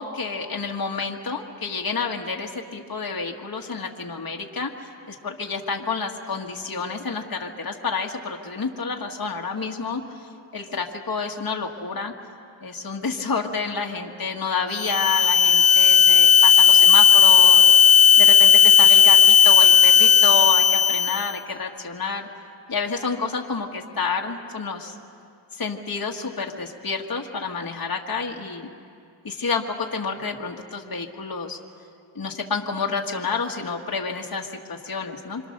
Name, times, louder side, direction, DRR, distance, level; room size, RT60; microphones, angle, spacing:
voice 1, 0.0-4.7 5.1-10.2 10.5-12.1 12.6-17.7 18.2-22.3 22.7-25.0 25.5-28.7 29.2-31.6 32.2-35.4, left 5 dB, 45° left, 1 dB, 1.7 m, -29 dB
sound 1, 14.7-21.3, left 7 dB, 30° left, 1.4 m, -14 dB
27.0 x 24.5 x 6.7 m, 2.4 s
cardioid pair, 70°, 47 cm